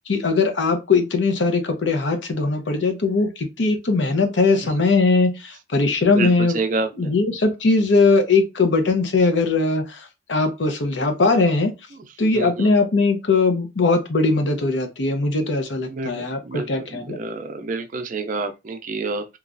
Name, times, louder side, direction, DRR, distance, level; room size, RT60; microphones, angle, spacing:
voice 1, 0.1-6.6 7.0-11.7 12.2-17.2, left 3 dB, 80° left, 0.6 m, -20 dB
voice 2, 6.1-7.1 12.0-12.1 12.3-12.7 15.9-19.3, right 3 dB, 45° right, 0.4 m, -28 dB
3.0 x 2.3 x 2.5 m
head